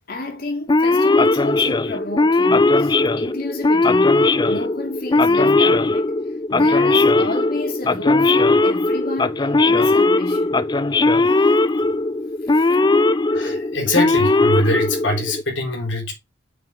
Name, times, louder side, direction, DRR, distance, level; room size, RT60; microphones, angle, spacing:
voice 1, 0.1-6.1 6.5-10.6 12.4-12.8, left 2 dB, 50° left, 2.8 m, -31 dB
Male speech man speaking / Siren, 0.7-15.4, left 2 dB, 25° left, 0.4 m, -18 dB
voice 2, 13.2-16.1, left 1 dB, 70° left, 3.8 m, -23 dB
6.9 x 6.6 x 3.7 m
head